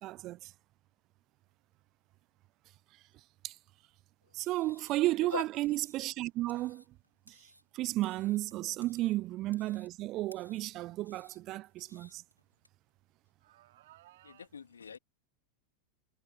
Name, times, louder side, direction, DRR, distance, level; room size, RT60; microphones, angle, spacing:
voice 1, 0.0-0.5 3.4-3.6 4.3-6.8 7.3-7.4 7.7-12.2, right 17 dB, 35° right, 0.5 m, -33 dB
sound 1, 1.6-1.8 3.2-3.3 6.3-6.5 7.5-7.6 8.6-8.7 9.4-9.5 10.8-12.6 13.4-14.5, right 15 dB, 55° right, 4.1 m, -63 dB
sound 2, 4.3-12.7, equal, 90° right, 4.1 m, -62 dB
voice 2, 14.2-15.0, left 6 dB, 70° left, 2.4 m, -41 dB
figure-of-eight pair, 90°, 0 cm